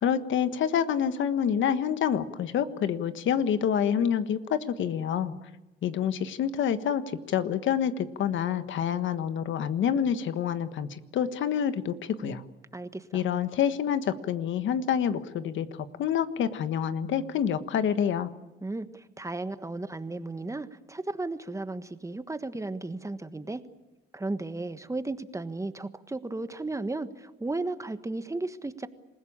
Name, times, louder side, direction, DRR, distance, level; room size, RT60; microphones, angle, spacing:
voice 1, 0.0-5.3 5.8-12.4 13.1-18.3, left 8 dB, 75° left, 11 dB, 1.4 m, -27 dB
voice 2, 12.7-13.2 18.6-23.6 24.1-28.9, right 2 dB, 15° right, 11 dB, 1.4 m, -34 dB
27.5 x 16.0 x 8.7 m, 1.1 s
cardioid pair, 90°, 20 cm